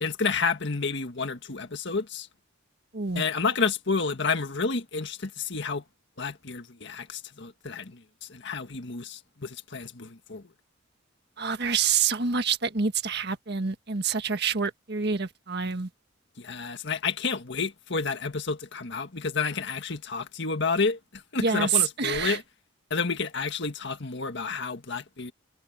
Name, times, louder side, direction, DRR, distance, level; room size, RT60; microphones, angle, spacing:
voice 1, 0.0-2.3 3.2-5.8 6.2-10.4 16.4-22.4 22.9-25.3, left 4 dB, 65° left, 1.7 m, -30 dB
voice 2, 11.4-15.9 21.4-22.4, right 6 dB, 60° right, 1.7 m, -27 dB
head